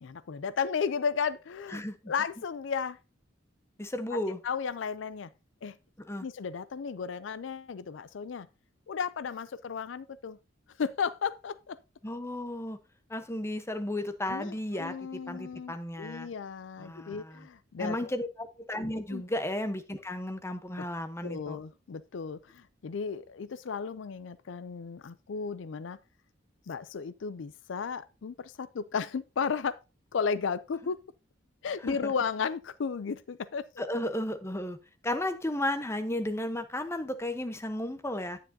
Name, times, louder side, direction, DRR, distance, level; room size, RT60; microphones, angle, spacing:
voice 1, 0.0-1.8 2.1-3.0 4.1-4.2 4.4-5.3 5.6-5.8 6.2-8.5 8.9-10.4 10.8-11.8 14.3-18.1 19.1-19.2 21.2-26.0 26.7-29.8 30.1-31.0 31.6-33.7, left 6 dB, 70° left, 0.4 m, -34 dB
voice 2, 1.7-2.1 3.8-4.4 6.0-6.3 12.0-12.8 13.1-16.3 16.8-17.5 17.8-21.6 31.8-32.1 33.8-34.8 35.0-38.4, left 1 dB, 15° left, 0.9 m, -34 dB
9.9 x 9.2 x 2.7 m
head